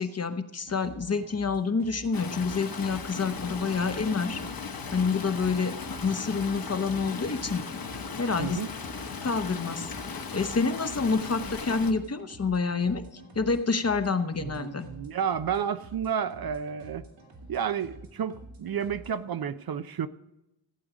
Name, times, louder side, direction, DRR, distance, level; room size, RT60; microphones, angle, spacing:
voice 1, 0.0-4.4 4.9-5.7 6.0-7.6 8.2-8.6 9.2-14.9, left 4 dB, 35° left, 9 dB, 1.0 m, -28 dB
sound 1, 0.6-19.1, right 2 dB, 80° right, 2.9 m, -49 dB
Stream, 2.1-11.9, left 5 dB, 50° left, 1.3 m, -37 dB
voice 2, 14.4-17.0 17.5-20.1, right 8 dB, 55° right, 12 dB, 0.6 m, -31 dB
15.5 x 7.9 x 5.0 m, 0.89 s
cardioid pair, 70°, 44 cm